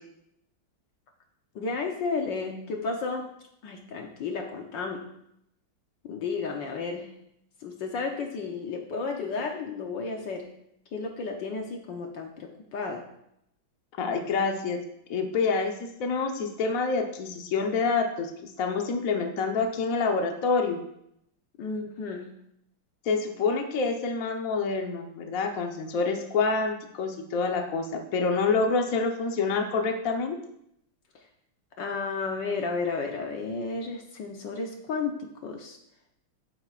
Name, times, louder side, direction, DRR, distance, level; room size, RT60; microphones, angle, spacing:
voice 1, 1.5-3.2 3.6-5.0 6.0-7.1 7.6-10.5 10.9-13.0 21.6-22.3 31.8-35.8, left 4 dB, 65° left, 2 dB, 1.6 m, -32 dB
voice 2, 14.0-14.8 15.1-18.3 18.6-20.8 23.0-30.4, left 4 dB, 50° left, 2 dB, 1.3 m, -27 dB
12.0 x 9.7 x 2.5 m, 0.76 s
omnidirectional pair, 2.3 m